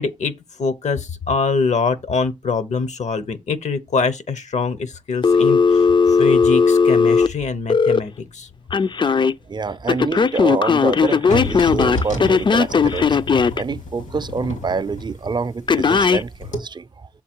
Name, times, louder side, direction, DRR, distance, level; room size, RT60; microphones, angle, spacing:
voice 1, 0.0-8.5, left 4 dB, 70° left, 0.8 m, -24 dB
Telephone, 5.2-8.0 8.7-9.3 9.9-13.6 15.7-16.2, left 5 dB, 40° left, 0.4 m, -16 dB
voice 2, 9.5-13.2 13.6-17.1, right 4 dB, 40° right, 0.4 m, -26 dB
sound 1, 11.3-16.1 16.4-16.6, left 2 dB, 85° left, 2.5 m, -29 dB
7.0 x 3.8 x 4.4 m
cardioid pair, 55°, 12 cm